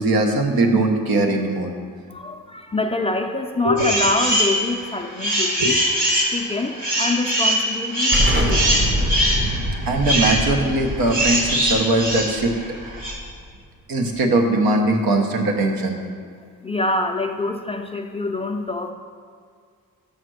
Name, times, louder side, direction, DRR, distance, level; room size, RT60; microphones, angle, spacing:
voice 1, 0.0-1.7 3.6-3.9 5.6-5.7 9.9-12.5 13.9-16.0, right 2 dB, 85° right, 3 dB, 1.0 m, -20 dB
voice 2, 2.1-5.8 6.3-8.7 16.6-18.9, left 2 dB, 15° left, 3 dB, 0.3 m, -25 dB
sound 1, 3.8-4.5 5.0-13.1, equal, 60° right, 2.0 m, -22 dB
Explosion, 8.1-13.5, equal, 35° right, 0.8 m, -25 dB
6.5 x 5.8 x 6.2 m, 2.1 s
wide cardioid pair, 160°, 35 cm